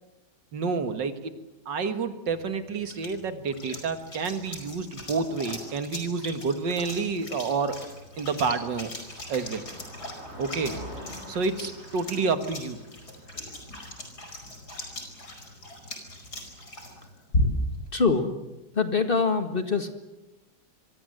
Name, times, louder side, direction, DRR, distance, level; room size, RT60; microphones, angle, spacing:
voice 1, 0.5-1.3 1.7-7.8 8.2-8.9 9.3-9.6 10.4-10.7 11.3-12.8, right 4 dB, 85° right, 8 dB, 2.4 m, -29 dB
sound 1, 2.3-17.8, left 1 dB, 60° left, 5.6 m, -37 dB
Car passing by, 7.0-14.9, equal, 35° right, 5.7 m, -46 dB
voice 2, 17.9-18.3 18.7-19.9, left 4 dB, 30° left, 7 dB, 1.8 m, -24 dB
26.5 x 23.0 x 7.8 m, 1.0 s
omnidirectional pair, 1.9 m